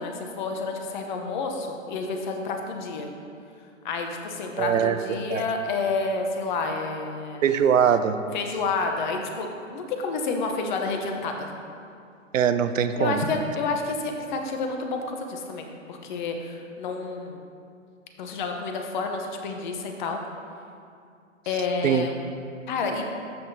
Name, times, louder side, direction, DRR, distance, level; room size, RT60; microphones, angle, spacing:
voice 1, 0.0-3.1 3.8-7.4 8.3-11.5 13.0-17.4 18.2-20.2 21.5-22.2 22.7-23.0, left 4 dB, 40° left, 3 dB, 0.9 m, -29 dB
voice 2, 4.6-5.0 5.3-5.4 7.4-8.2 12.3-13.2 21.8-22.1, right 8 dB, 80° right, 10 dB, 0.6 m, -22 dB
12.5 x 5.7 x 2.8 m, 2.4 s
hypercardioid pair, 135°, 39 cm